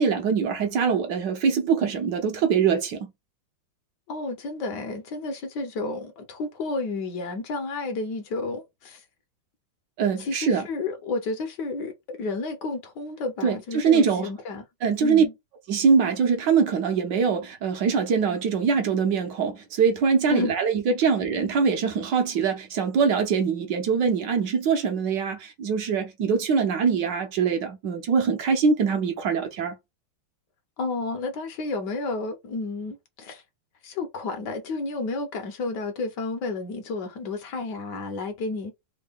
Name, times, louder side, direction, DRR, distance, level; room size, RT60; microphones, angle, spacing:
voice 1, 0.0-3.1 10.0-10.7 13.4-14.3 14.8-15.2 15.7-29.8, right 6 dB, 70° right, 1.2 m, -23 dB
voice 2, 4.1-9.0 10.2-14.6 15.0-15.3 20.3-20.5 30.8-33.4 33.8-38.7, left 3 dB, 65° left, 1.2 m, -31 dB
3.6 x 2.1 x 3.4 m
omnidirectional pair, 2.2 m